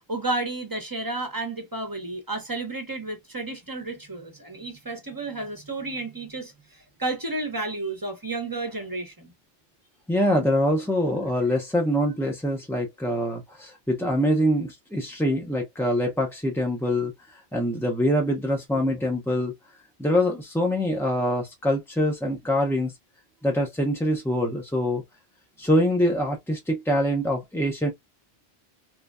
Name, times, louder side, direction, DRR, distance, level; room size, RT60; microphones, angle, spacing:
voice 1, 0.1-6.5 7.0-9.3, right 2 dB, 25° right, 0.7 m, -31 dB
voice 2, 10.1-19.5 20.0-22.9 23.4-25.0 25.6-27.9, equal, 5° left, 0.3 m, -24 dB
3.2 x 2.2 x 2.3 m
omnidirectional pair, 1.0 m